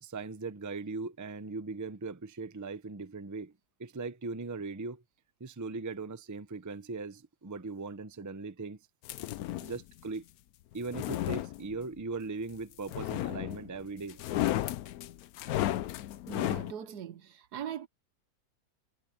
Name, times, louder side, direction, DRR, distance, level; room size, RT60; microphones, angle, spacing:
voice 1, 0.0-3.5 3.8-5.0 5.4-8.8 9.6-10.2 10.7-14.4, right 3 dB, 20° right, 0.5 m, -39 dB
sound 1, 9.1-9.8 10.7-12.0 12.9-13.8 14.1-16.7, left 14 dB, 75° left, 1.1 m, -33 dB
voice 2, 16.3-17.9, right 9 dB, 85° right, 1.6 m, -40 dB
omnidirectional pair, 1.7 m